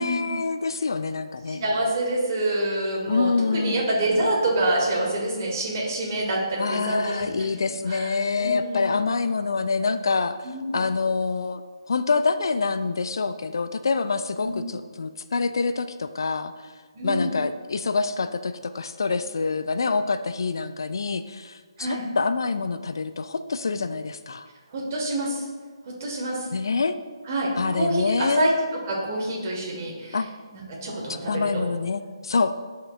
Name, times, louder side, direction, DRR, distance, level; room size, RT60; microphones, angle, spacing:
voice 1, 0.0-1.6 3.1-3.8 6.6-10.4 10.7-11.6 11.9-16.5 17.0-24.5 26.5-27.0 27.6-28.5 30.1-30.3 31.3-32.6, left 4 dB, 55° left, 11 dB, 0.3 m, -26 dB
voice 2, 1.5-7.5 7.8-9.0 10.4-10.7 14.4-14.6 16.9-17.3 21.8-22.0 24.7-25.5 25.8-26.5 27.2-30.3 30.5-31.7, right 1 dB, 35° right, -3 dB, 1.5 m, -27 dB
10.0 x 6.4 x 2.4 m, 1.4 s
figure-of-eight pair, 140°, 3 cm